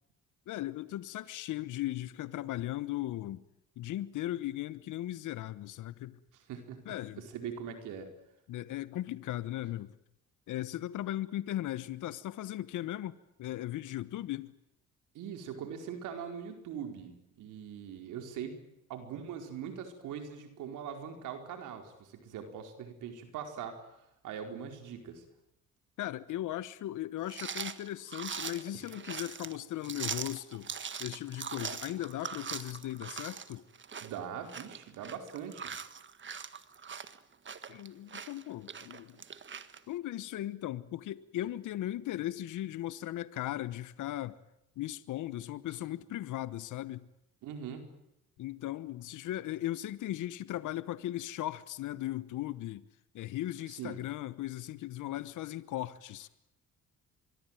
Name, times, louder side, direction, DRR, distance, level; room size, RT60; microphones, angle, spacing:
voice 1, 0.5-3.4 3.8-6.2 6.8-7.2 8.5-10.0 10.5-14.6 26.0-30.7 31.0-33.6 37.7-39.2 39.9-44.4 44.8-47.1 48.4-52.8 53.1-56.3, left 14 dB, 80° left, 1.2 m, -37 dB
voice 2, 6.5-6.9 7.3-8.1 15.1-18.6 18.9-23.8 24.2-25.2 28.7-28.8 34.0-35.7 47.4-47.9 53.8-54.0, right 8 dB, 90° right, 4.8 m, -41 dB
sound 1, 27.3-39.8, right 6 dB, 40° right, 1.7 m, -42 dB
25.0 x 23.0 x 9.2 m
cardioid pair, 90°, 30 cm